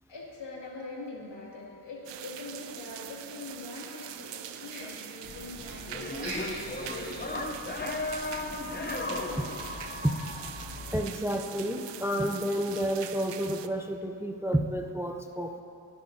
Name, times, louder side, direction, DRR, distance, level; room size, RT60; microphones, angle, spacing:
voice 1, 0.1-7.3 9.3-9.4, left 3 dB, 80° left, -4 dB, 2.5 m, -43 dB
sound 1, 2.1-13.7, right 10 dB, 85° right, 0.6 m, -43 dB
sound 2, 3.8-4.4 4.7-5.1 6.1-6.7 7.0-7.1 7.6-7.7 8.1-8.2, right 2 dB, 55° right, 2.3 m, -41 dB
sound 3, 5.2-11.1, left 2 dB, 25° left, 0.7 m, -36 dB
voice 2, 10.9-15.6, equal, 5° right, 5 dB, 0.4 m, -30 dB
22.5 x 9.8 x 2.7 m, 2.7 s
wide cardioid pair, 130°, 42 cm